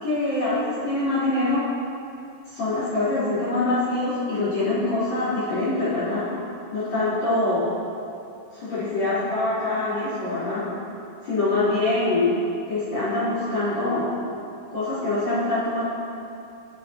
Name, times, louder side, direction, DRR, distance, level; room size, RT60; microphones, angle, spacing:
voice 1, 0.0-1.6 2.5-6.3 6.7-7.7 8.5-10.6 11.2-12.3 12.7-14.1 14.7-15.8, left 2 dB, 50° left, -12 dB, 5.2 m, -24 dB
27.5 x 9.5 x 3.0 m, 2.6 s
omnidirectional pair, 4.1 m